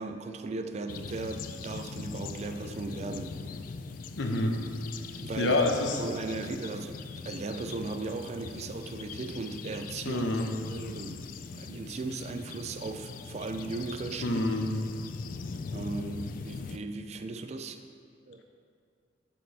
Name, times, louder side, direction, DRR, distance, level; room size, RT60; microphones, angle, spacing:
voice 1, 0.0-3.3 5.2-5.6 6.0-10.2 10.7-14.4 15.7-17.8 18.3-18.4, right 3 dB, 35° right, 8 dB, 0.3 m, -37 dB
sound 1, 0.9-16.8, left 4 dB, 45° left, 0.3 m, -41 dB
voice 2, 4.2-4.6 5.4-6.0 10.0-10.5 14.2-14.7, left 2 dB, 75° left, 3 dB, 0.7 m, -27 dB
7.4 x 6.5 x 3.4 m, 2.3 s
head